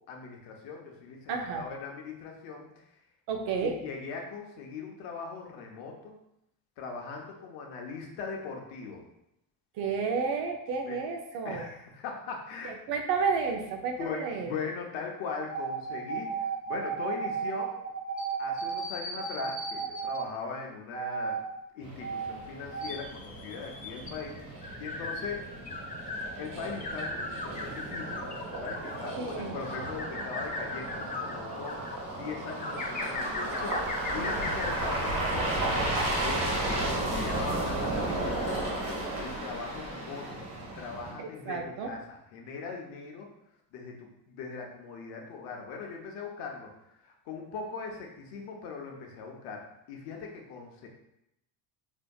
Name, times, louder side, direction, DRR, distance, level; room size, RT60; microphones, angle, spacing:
voice 1, 0.0-2.8 3.6-6.2 6.8-9.0 10.9-11.0 11.4-12.8 14.0-17.7 18.4-21.4 21.7-25.4 26.4-28.3 28.6-35.8 36.2-40.5 40.7-43.3 43.7-46.7 47.0-50.9, left 5 dB, 70° left, 1 dB, 0.9 m, -40 dB
voice 2, 1.3-1.7 3.3-3.8 9.8-11.6 12.6-14.5 29.2-29.6 34.2-34.5 41.2-41.9, right 5 dB, 60° right, 4 dB, 0.7 m, -31 dB
sound 1, 15.4-20.3 20.9-21.5 22.0-22.4 22.7-26.3 26.7-29.1 29.6-32.0 32.6-34.8, right 2 dB, 20° left, 0.5 m, -35 dB
sound 2, 21.8-41.1, right 1 dB, 45° right, 1.3 m, -34 dB
4.1 x 2.7 x 2.3 m, 0.82 s
supercardioid pair, 95°, 45 cm